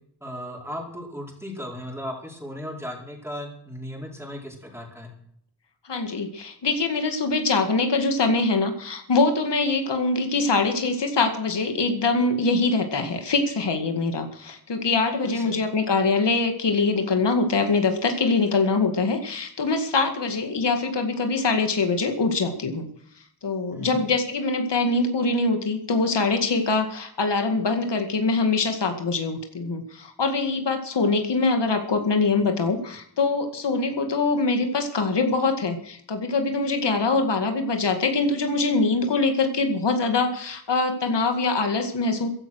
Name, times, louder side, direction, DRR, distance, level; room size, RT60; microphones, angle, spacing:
voice 1, 0.2-5.1 15.2-15.6 23.7-24.0, equal, 5° right, 0 dB, 4.9 m, -36 dB
voice 2, 5.9-22.9 23.4-42.3, left 3 dB, 80° left, 6 dB, 2.1 m, -23 dB
15.0 x 11.5 x 6.4 m, 0.65 s
wide cardioid pair, 90°, 41 cm